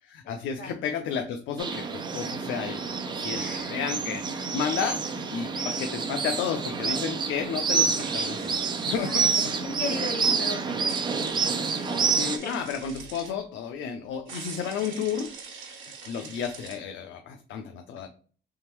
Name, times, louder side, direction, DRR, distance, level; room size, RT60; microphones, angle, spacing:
voice 1, 0.0-8.5 8.8-9.5 12.0-15.3 15.7-18.1, left 7 dB, 85° left, 5 dB, 0.5 m, -32 dB
sound 1, 1.6-12.4, right 5 dB, 25° right, 0.4 m, -28 dB
voice 2, 3.4-3.8 5.5-6.1 8.9-9.4 9.6-12.1 12.4-12.6, left 3 dB, 55° left, 3 dB, 1.0 m, -38 dB
sound 2, 7.9-9.5 10.9-13.3 14.3-16.8, right 5 dB, 85° right, 1.2 m, -44 dB
3.6 x 3.3 x 3.0 m, 0.42 s
cardioid pair, 180°, 19 cm